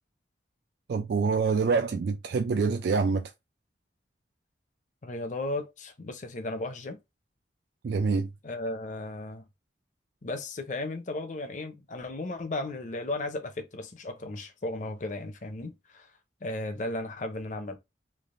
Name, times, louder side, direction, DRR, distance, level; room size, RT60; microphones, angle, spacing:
voice 1, 0.9-3.3 7.8-8.3, right 4 dB, 65° right, 0.3 m, -26 dB
voice 2, 5.0-7.0 8.4-9.5 10.2-16.1 16.4-17.8, left 2 dB, 45° left, 0.6 m, -35 dB
3.3 x 2.4 x 2.5 m
head